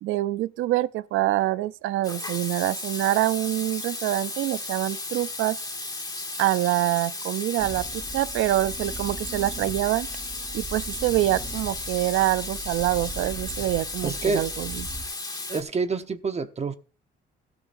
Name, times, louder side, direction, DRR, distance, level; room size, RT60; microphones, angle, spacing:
voice 1, 0.0-5.6 6.4-10.1 10.5-14.9, right 15 dB, 90° right, 0.5 m, -25 dB
Water tap faucet / Sink (filling or washing), 2.0-15.6, left 3 dB, 20° left, 2.0 m, -34 dB
sound 1, 7.6-15.0, right 2 dB, 5° right, 2.9 m, -40 dB
voice 2, 14.0-14.5 15.5-16.8, right 4 dB, 35° right, 1.0 m, -27 dB
14.0 x 13.0 x 2.6 m
cardioid pair, 90°, 20 cm